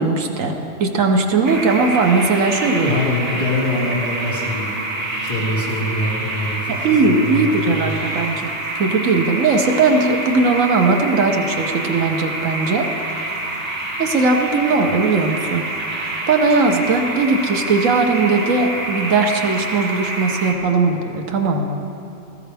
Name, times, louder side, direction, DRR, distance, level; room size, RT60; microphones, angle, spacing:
voice 1, 0.0-2.9 6.7-12.9 14.0-15.7 15.9-21.8, right 3 dB, 85° right, 4 dB, 1.4 m, -18 dB
sound 1, 1.4-20.5, right 2 dB, 60° right, 2.0 m, -27 dB
voice 2, 2.7-8.0, left 1 dB, 20° left, -9 dB, 4.2 m, -24 dB
18.5 x 15.5 x 3.5 m, 3.0 s
omnidirectional pair, 1.3 m